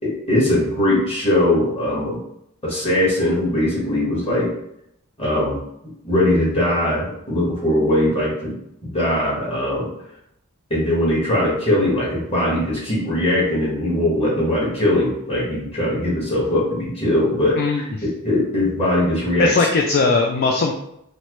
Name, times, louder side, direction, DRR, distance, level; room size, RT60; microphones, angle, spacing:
voice 1, 0.0-2.2 2.6-4.5 5.2-5.6 6.0-9.9 10.7-19.5, left 1 dB, 25° left, -6 dB, 1.4 m, -20 dB
voice 2, 17.6-18.0 19.4-20.7, left 4 dB, 45° left, 1 dB, 0.3 m, -19 dB
4.3 x 2.0 x 3.0 m, 0.77 s
head